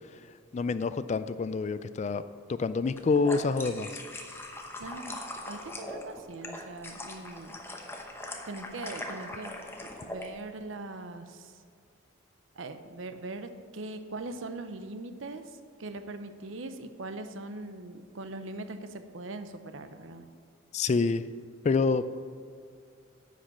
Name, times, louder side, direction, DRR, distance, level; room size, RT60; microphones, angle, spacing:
voice 1, 0.5-2.2 2.5-4.0 20.7-21.2 21.6-22.1, left 4 dB, 35° left, 14 dB, 0.3 m, -27 dB
sound 1, 2.8-10.3, left 1 dB, 10° left, 0.9 m, -41 dB
voice 2, 4.8-5.2 5.5-7.6 8.5-9.6 10.0-11.5 12.5-15.5 15.8-20.2, right 2 dB, 70° right, 9 dB, 0.7 m, -41 dB
10.0 x 5.2 x 7.1 m, 2.3 s
head